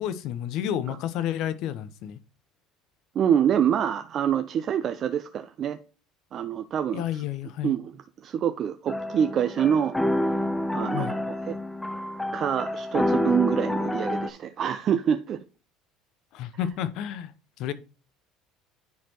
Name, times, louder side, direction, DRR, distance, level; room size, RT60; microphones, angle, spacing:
voice 1, 0.0-2.2 6.9-7.8 10.9-11.2 16.3-17.3 17.6-17.7, left 10 dB, 65° left, 0.8 m, -30 dB
voice 2, 3.1-5.8 6.3-7.2 7.6-7.9 8.2-10.0 10.3-10.5 10.7-11.6 12.3-15.4, right 8 dB, 50° right, 0.6 m, -26 dB
sound 1, 8.9-14.3, left 1 dB, 10° left, 0.8 m, -28 dB
10.5 x 4.4 x 2.9 m
supercardioid pair, 85°, 0 cm